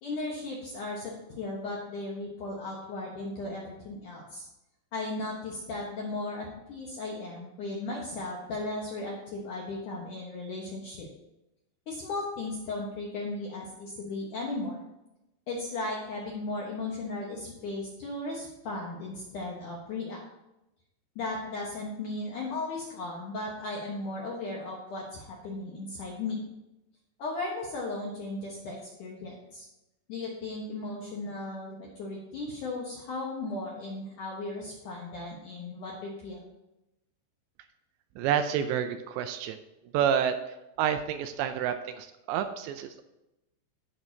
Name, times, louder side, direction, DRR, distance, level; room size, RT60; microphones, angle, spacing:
voice 1, 0.0-4.4 4.9-11.1 11.9-14.8 15.5-20.2 21.2-26.4 27.2-29.6 30.1-36.4, left 2 dB, 70° left, -3 dB, 2.0 m, -36 dB
voice 2, 38.2-39.6 39.9-40.4 40.8-43.0, right 9 dB, 80° right, 8 dB, 2.7 m, -29 dB
15.5 x 6.2 x 2.8 m, 0.91 s
omnidirectional pair, 5.3 m